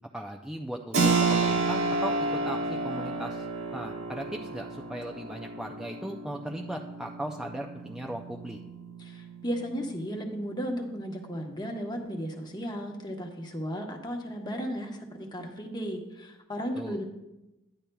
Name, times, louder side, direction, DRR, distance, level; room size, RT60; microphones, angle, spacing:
voice 1, 0.1-3.5 3.7-8.6 16.7-17.0, right 1 dB, 5° right, 0 dB, 0.4 m, -38 dB
Keyboard (musical), 0.9-11.3, right 3 dB, 75° right, 1.4 m, -31 dB
voice 2, 9.0-17.0, equal, 20° left, 3 dB, 1.0 m, -35 dB
10.5 x 9.9 x 2.3 m, 0.97 s
head